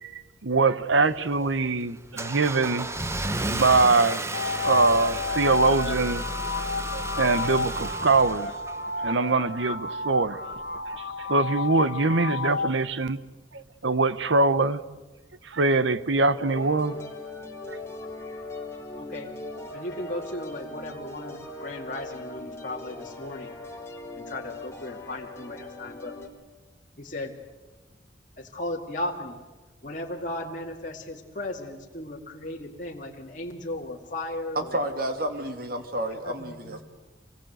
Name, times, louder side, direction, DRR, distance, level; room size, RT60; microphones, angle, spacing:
voice 1, 0.0-2.9 3.4-4.2 4.6-6.2 6.9-8.5 9.0-10.4 11.2-13.2 13.5-14.8 15.4-17.0 17.7-17.8, right 3 dB, 80° right, 0.9 m, -23 dB
Car / Engine starting, 0.9-9.1, right 2 dB, 15° right, 0.9 m, -33 dB
sound 1, 4.3-12.7, left 4 dB, 65° left, 1.3 m, -31 dB
sound 2, 16.4-26.3, left 2 dB, 15° left, 3.2 m, -40 dB
voice 2, 18.9-19.3 19.7-23.5 24.1-26.1 27.0-27.3 28.4-29.4 29.8-34.8 36.2-36.8, left 1 dB, 45° left, 2.2 m, -36 dB
voice 3, 34.6-36.8, right 1 dB, 50° right, 2.3 m, -30 dB
25.5 x 19.5 x 8.0 m
head